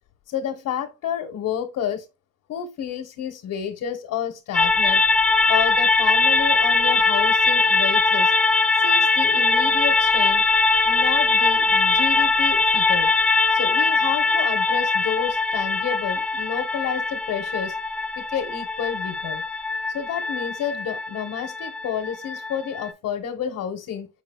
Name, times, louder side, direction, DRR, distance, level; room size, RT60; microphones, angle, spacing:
voice 1, 0.3-2.1 2.5-5.0 5.5-8.3 8.8-10.4 10.8-13.1 13.5-17.8 18.2-19.4 19.9-24.1, left 8 dB, 55° left, 1.0 m, -30 dB
sound 1, 4.5-22.9, left 3 dB, 5° left, 0.4 m, -21 dB
4.9 x 4.8 x 2.2 m
supercardioid pair, 80°, 34 cm